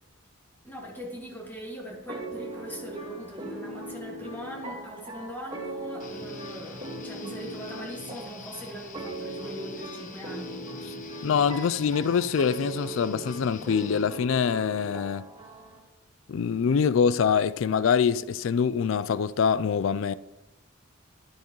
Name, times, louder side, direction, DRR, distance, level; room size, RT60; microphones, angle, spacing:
voice 1, 0.6-10.6, equal, 10° left, 2.2 m, -40 dB
sound 1, 2.1-15.8, right 2 dB, 30° right, 1.6 m, -39 dB
Guitar, 6.0-14.0, left 4 dB, 40° left, 0.8 m, -46 dB
voice 2, 11.2-15.2 16.3-20.1, left 6 dB, 65° left, 0.3 m, -24 dB
12.0 x 10.5 x 3.1 m
head